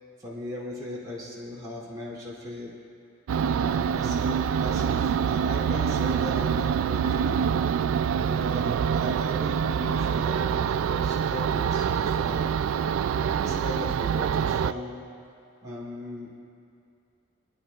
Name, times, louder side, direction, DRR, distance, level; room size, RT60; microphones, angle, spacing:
voice 1, 0.2-2.7 3.6-7.4 8.2-12.5 13.2-14.9 15.6-16.3, left 1 dB, 20° right, -8 dB, 2.8 m, -37 dB
sound 1, 3.3-14.7, right 7 dB, 90° right, 0.3 m, -25 dB
28.5 x 10.5 x 2.4 m, 2.4 s
head